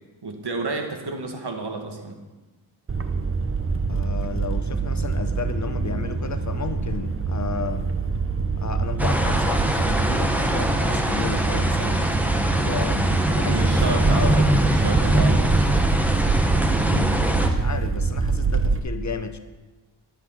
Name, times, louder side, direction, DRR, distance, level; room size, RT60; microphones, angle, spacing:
voice 1, 0.2-2.2 13.4-15.7, right 3 dB, 60° right, 3 dB, 2.1 m, -31 dB
sound 1, 2.9-18.8, right 4 dB, 30° right, 0.8 m, -25 dB
voice 2, 3.9-8.0 8.6-12.1 12.6-14.4 16.8-19.4, left 5 dB, 40° left, 10 dB, 0.8 m, -33 dB
Bass guitar, 5.7-10.2, left 2 dB, 15° left, 3.9 m, -41 dB
sound 2, 9.0-17.5, equal, 5° right, 1.4 m, -22 dB
12.0 x 8.2 x 5.9 m, 1.2 s
cardioid pair, 65°, 45 cm